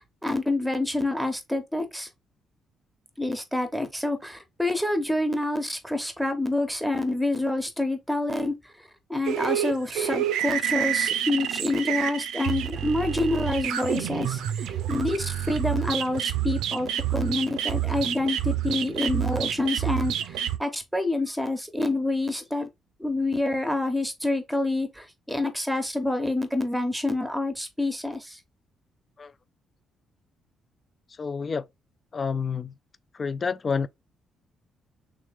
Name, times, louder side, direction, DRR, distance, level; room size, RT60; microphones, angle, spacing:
voice 1, 0.2-2.1 3.2-8.5 9.1-22.7 23.0-28.4, left 2 dB, ahead, 1.0 m, -27 dB
sound 1, 9.2-20.6, right 11 dB, 85° right, 0.5 m, -28 dB
voice 2, 31.2-31.7 32.1-32.7 33.1-33.9, left 5 dB, 35° left, 0.3 m, -28 dB
3.1 x 3.1 x 3.5 m
cardioid pair, 90°, 0 cm